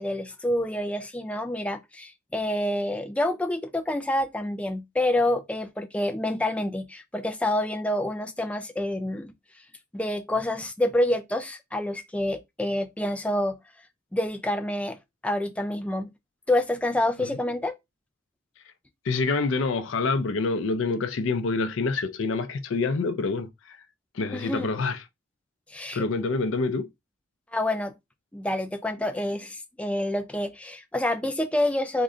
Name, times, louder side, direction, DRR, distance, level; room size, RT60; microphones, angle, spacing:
voice 1, 0.0-9.3 9.9-13.6 14.1-15.0 15.2-16.1 16.5-17.7 24.3-24.7 25.7-26.0 27.5-27.9 28.3-32.0, left 1 dB, 5° left, 0.3 m, -27 dB
voice 2, 19.0-23.8 24.1-25.0 25.9-26.9, left 3 dB, 70° left, 0.4 m, -27 dB
3.7 x 2.1 x 3.6 m
head